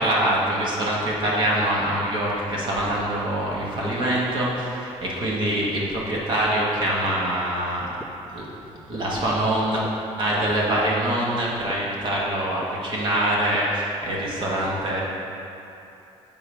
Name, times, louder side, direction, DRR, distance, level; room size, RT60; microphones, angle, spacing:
voice 1, 0.0-7.9 8.3-9.8 10.2-15.0, right 1 dB, 40° right, -5 dB, 1.6 m, -24 dB
sound 1, 6.1-6.2 7.1-7.2 8.0-8.1 8.9-9.0 9.8-9.9 10.8-10.9 11.7-11.8 12.6-12.7 13.5-13.6, left 1 dB, 5° left, 0.3 m, -37 dB
9.5 x 7.7 x 3.5 m, 2.8 s
cardioid pair, 160°, 12 cm